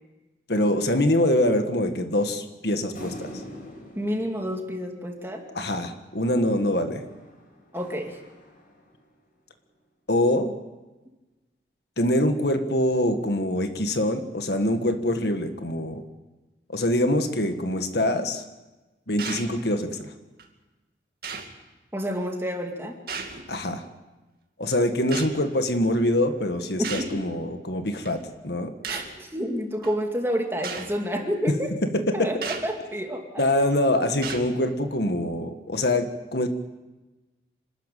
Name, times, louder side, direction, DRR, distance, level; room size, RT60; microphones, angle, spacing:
voice 1, 0.5-3.3 5.6-7.0 10.1-10.5 12.0-16.0 16.7-18.4 19.1-20.1 23.5-23.8 24.6-28.7 32.1-32.3 33.4-36.5, left 1 dB, 65° left, 7 dB, 1.7 m, -24 dB
sound 1, 2.9-5.6 7.1-9.1, equal, 50° left, 6.4 m, -44 dB
voice 2, 4.0-5.4 7.7-8.2 21.9-23.0 26.9-27.2 28.9-31.7 32.1-32.4 32.6-33.5, equal, 15° right, 2 dB, 2.4 m, -29 dB
sound 2, 19.2-19.5 20.4-20.5 21.2-21.6 23.1-23.5 25.1-25.3 26.8-27.2 28.1-28.2 28.8-29.2 29.8-29.9 30.6-30.9 32.4-32.7 33.4-33.6 34.2-34.5, right 5 dB, 55° right, 2.4 m, -34 dB
26.5 x 13.0 x 9.2 m, 1.1 s
head